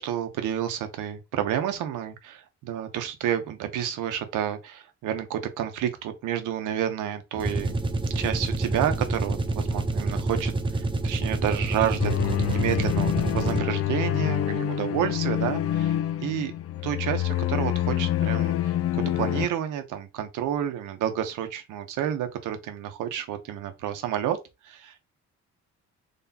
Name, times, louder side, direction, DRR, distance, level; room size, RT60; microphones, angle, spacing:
voice 1, 0.0-7.8 8.1-16.5 16.8-24.4 24.6-25.0, right 10 dB, 90° right, 0.9 m, -30 dB
sound 1, 7.3-13.9, right 2 dB, 15° right, 0.6 m, -28 dB
sound 2, 12.0-19.5, left 12 dB, 50° left, 0.4 m, -26 dB
4.0 x 3.1 x 2.8 m
cardioid pair, 90°, 30 cm